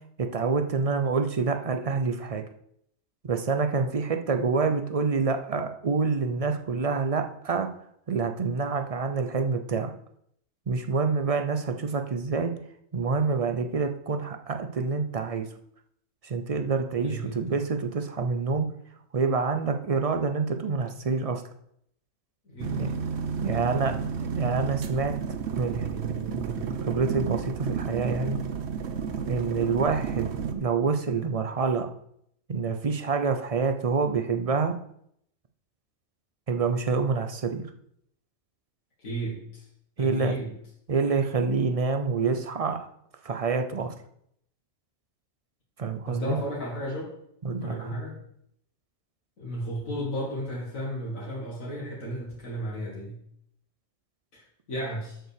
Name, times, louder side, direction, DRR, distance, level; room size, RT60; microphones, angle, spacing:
voice 1, 0.2-2.4 3.2-7.7 8.1-9.9 10.7-12.5 12.9-15.5 16.2-18.7 19.1-21.4 22.7-22.9 23.4-28.4 29.3-31.9 32.5-34.7 36.5-37.7 40.0-40.4 40.9-42.9 43.2-43.9 45.8-46.4 47.4-47.9, right 4 dB, 45° right, 6 dB, 0.5 m, -27 dB
voice 2, 17.0-17.4 22.5-23.0 23.5-24.0 39.0-39.7 40.0-40.5 46.1-47.2 47.6-48.2 49.4-53.2 54.3-55.2, equal, 85° left, -4 dB, 2.4 m, -34 dB
sound 1, 22.6-30.5, right 6 dB, 60° right, 1.0 m, -32 dB
7.5 x 5.5 x 6.6 m, 0.71 s
omnidirectional pair, 1.4 m